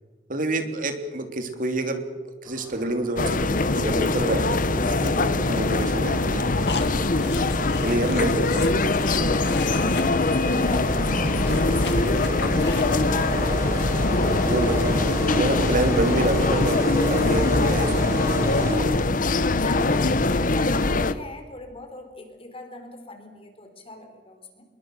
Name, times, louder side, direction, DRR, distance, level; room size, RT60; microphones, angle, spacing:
voice 1, 0.3-2.0 2.4-6.7 7.8-9.0 14.4-18.9, right 2 dB, 50° right, 6 dB, 3.2 m, -28 dB
sound 1, 2.5-19.3, equal, 20° right, 6.0 m, -32 dB
sound 2, 3.2-21.1, left 2 dB, 50° left, 1.0 m, -23 dB
sound 3, 6.7-10.0 10.3-10.5 10.7-10.8 11.1-13.0, left 4 dB, 70° left, 2.2 m, -35 dB
voice 2, 9.3-14.8 18.8-24.6, left 2 dB, 35° left, 5 dB, 4.1 m, -40 dB
27.0 x 22.0 x 6.6 m, 1.3 s
head